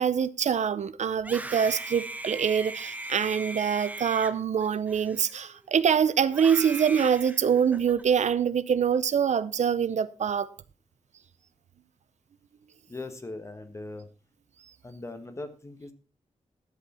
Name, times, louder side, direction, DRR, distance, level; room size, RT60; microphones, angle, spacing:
voice 1, 0.0-10.5, right 7 dB, 70° right, 0.6 m, -25 dB
Screaming, 1.1-5.7 6.3-8.0, right 2 dB, 15° right, 0.9 m, -39 dB
voice 2, 12.9-14.1 14.8-15.9, left 2 dB, 25° left, 1.3 m, -40 dB
12.0 x 8.1 x 4.2 m
wide cardioid pair, 170°, 12 cm